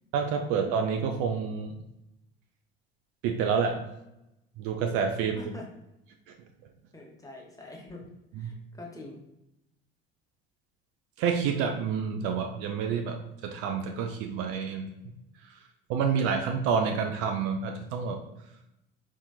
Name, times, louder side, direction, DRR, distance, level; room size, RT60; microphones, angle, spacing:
voice 1, 0.1-1.7 3.2-3.8 4.6-5.4 8.4-8.5 11.2-14.9 15.9-18.2, right 6 dB, 50° right, 3 dB, 0.4 m, -28 dB
voice 2, 5.3-5.7 6.9-8.0 8.4-9.2, left 2 dB, 10° left, 0 dB, 0.8 m, -44 dB
4.2 x 2.4 x 2.3 m, 0.87 s
figure-of-eight pair, 60°, 30 cm